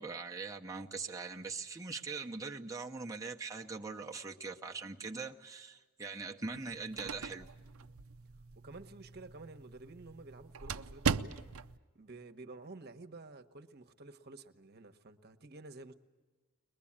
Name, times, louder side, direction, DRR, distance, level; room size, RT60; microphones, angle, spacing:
voice 1, 0.0-7.5, right 4 dB, 15° right, 0.9 m, -42 dB
sound 1, 6.5-11.8, right 5 dB, 75° right, 0.7 m, -39 dB
voice 2, 8.5-11.4 11.9-15.9, right 2 dB, 50° right, 1.2 m, -51 dB
22.5 x 21.0 x 8.7 m
head